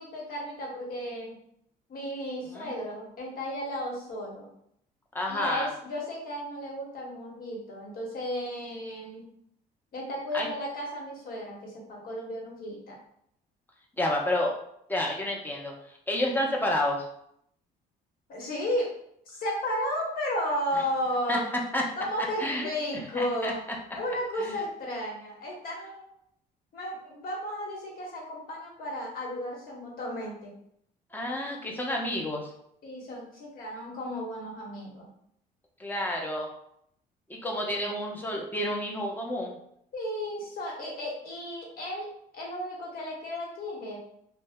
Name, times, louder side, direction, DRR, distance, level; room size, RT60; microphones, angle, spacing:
voice 1, 0.0-1.4 1.9-4.5 5.3-9.3 9.9-13.0 18.3-18.9 19.2-21.5 21.9-23.6 23.9-26.1 26.7-30.5 32.8-35.1 37.7-37.8 39.9-42.1 42.3-44.0, equal, 60° left, -2 dB, 1.1 m, -34 dB
voice 2, 5.1-5.7 10.3-10.5 14.0-14.6 14.9-15.7 16.1-17.0 21.3-21.4 21.7-21.8 22.4-22.7 23.1-23.5 24.4-24.6 31.1-32.5 35.8-36.5 37.3-39.6, left 1 dB, 10° left, 0 dB, 0.6 m, -29 dB
2.7 x 2.1 x 3.4 m, 0.73 s
cardioid pair, 110°, 17 cm